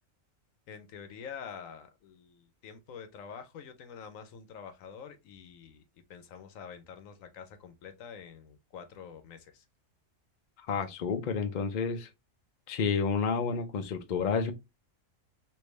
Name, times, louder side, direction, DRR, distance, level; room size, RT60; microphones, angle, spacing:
voice 1, 0.7-5.8 6.1-9.6, left 7 dB, 80° left, 1.1 m, -47 dB
voice 2, 10.6-12.1 12.7-14.5, left 5 dB, 50° left, 0.6 m, -30 dB
3.4 x 2.6 x 3.2 m
omnidirectional pair, 1.4 m